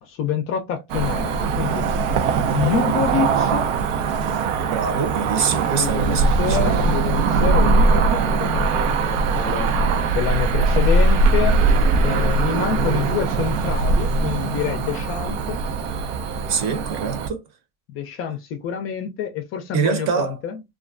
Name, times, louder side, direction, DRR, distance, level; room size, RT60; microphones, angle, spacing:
voice 1, 0.0-1.8 2.5-3.7 5.8-9.7 10.1-11.6 12.0-15.6 17.9-20.6, left 8 dB, 35° left, 0.5 m, -27 dB
Cricket / Motor vehicle (road), 0.9-17.3, right 3 dB, 70° right, 0.6 m, -20 dB
voice 2, 4.7-6.7 16.5-17.4 19.7-20.4, right 6 dB, 40° right, 0.9 m, -24 dB
2.4 x 2.1 x 2.4 m
hypercardioid pair, 105°, 40 cm